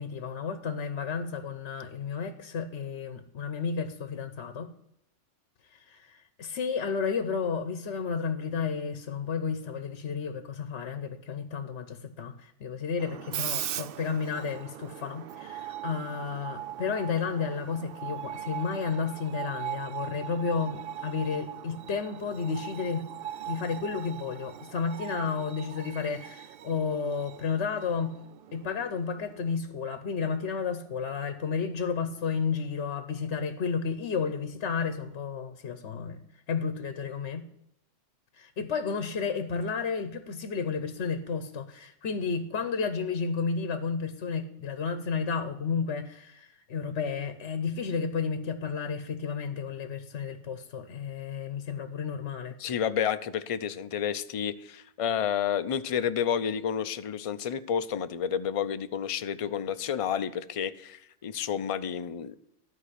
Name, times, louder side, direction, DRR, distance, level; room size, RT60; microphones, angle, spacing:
voice 1, 0.0-4.7 5.7-23.1 23.5-28.1 28.5-37.4 38.3-52.5, left 5 dB, 65° left, 10 dB, 1.1 m, -32 dB
Screech, 13.0-29.6, right 11 dB, 60° right, 0.6 m, -40 dB
voice 2, 52.6-62.4, left 8 dB, 45° left, 11 dB, 0.4 m, -30 dB
12.5 x 4.7 x 8.2 m, 0.77 s
omnidirectional pair, 1.3 m